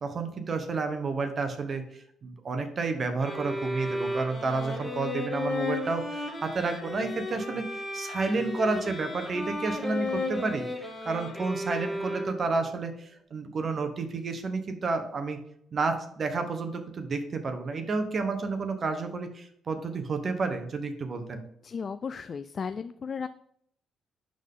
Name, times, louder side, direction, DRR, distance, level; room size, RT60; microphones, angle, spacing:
voice 1, 0.0-10.6 11.0-15.4 15.7-21.4, right 3 dB, 45° right, 7 dB, 1.1 m, -31 dB
sound 1, 3.2-12.6, left 2 dB, 10° left, 2.1 m, -34 dB
voice 2, 21.6-23.3, left 6 dB, 45° left, 11 dB, 0.3 m, -35 dB
11.5 x 3.9 x 3.8 m, 0.68 s
cardioid pair, 90°, 0 cm